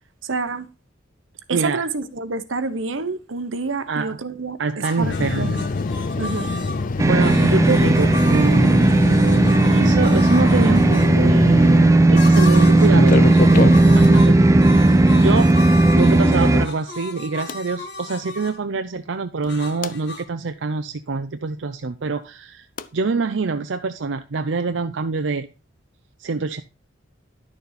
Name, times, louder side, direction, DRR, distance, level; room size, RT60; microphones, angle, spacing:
voice 1, 0.2-0.7 1.5-5.6 6.2-6.5, right 4 dB, 90° right, 1.1 m, -28 dB
voice 2, 1.5-1.8 3.9-4.2 4.6-5.6 6.2-6.6 7.0-8.9 9.7-14.5 15.1-15.6 15.9-22.7 22.9-25.5 26.2-26.6, right 4 dB, 70° right, 0.6 m, -25 dB
sound 1, 4.8-11.1 12.1-13.0 13.2-18.6 19.5-20.2, left 2 dB, 60° left, 1.6 m, -35 dB
sound 2, 5.0-12.1 12.8-14.1 15.5-15.6 17.5-17.6 19.4-19.9 22.8-22.9, left 3 dB, 45° left, 0.5 m, -25 dB
sound 3, 7.0-16.7, right 2 dB, 15° right, 0.5 m, -15 dB
11.0 x 6.9 x 4.1 m
head